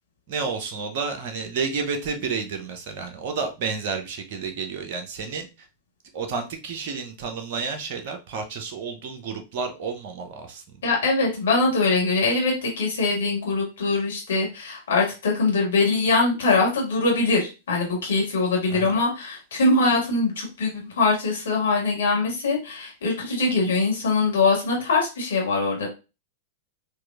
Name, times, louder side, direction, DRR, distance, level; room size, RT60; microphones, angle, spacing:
voice 1, 0.3-5.7 6.1-10.8 18.7-19.0, right 5 dB, 50° right, 6 dB, 0.7 m, -31 dB
voice 2, 10.8-25.9, left 3 dB, 70° left, -1 dB, 1.7 m, -22 dB
4.5 x 2.6 x 2.4 m, 0.29 s
figure-of-eight pair, 100°, 0 cm